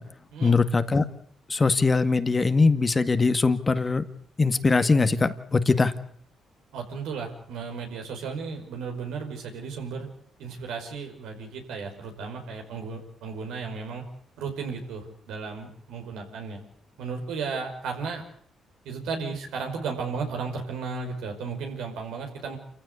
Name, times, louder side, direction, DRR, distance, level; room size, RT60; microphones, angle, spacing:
voice 1, 0.4-1.0 1.5-4.0 4.4-5.9, left 4 dB, 30° left, 9 dB, 1.9 m, -21 dB
voice 2, 6.7-10.1 10.4-14.0 14.4-16.6 17.0-18.2 18.8-22.6, right 5 dB, 85° right, 3 dB, 5.4 m, -34 dB
27.5 x 15.5 x 8.3 m, 0.63 s
supercardioid pair, 60°, 0 cm